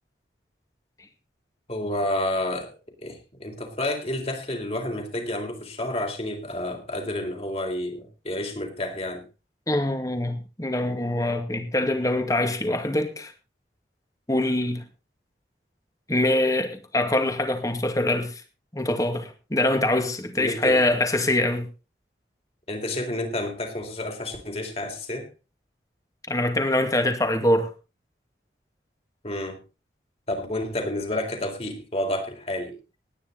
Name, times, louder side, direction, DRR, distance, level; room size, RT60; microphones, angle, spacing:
voice 1, 1.7-9.2 20.4-21.0 22.7-25.3 29.2-29.6 30.3-32.8, left 1 dB, 35° left, 3.9 m, -30 dB
voice 2, 9.7-13.3 14.3-14.8 16.1-18.4 18.7-21.7 26.3-27.7, left 1 dB, 20° left, 2.3 m, -24 dB
18.5 x 10.0 x 4.1 m
head